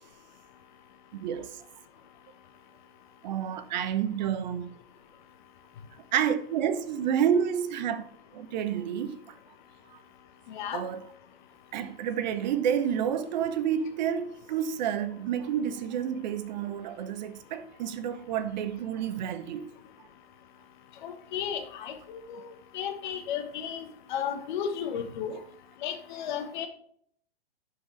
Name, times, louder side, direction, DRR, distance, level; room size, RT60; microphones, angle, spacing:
voice 1, 1.1-1.5 3.2-4.7 6.1-8.0 8.3-9.2 10.7-11.0 11.7-19.7, right 9 dB, 45° right, 0.7 m, -29 dB
voice 2, 10.5-10.8 21.0-22.5 22.7-25.4 25.8-26.7, left 8 dB, 50° left, 1.2 m, -34 dB
11.5 x 4.8 x 3.2 m
hypercardioid pair, 115°, 30 cm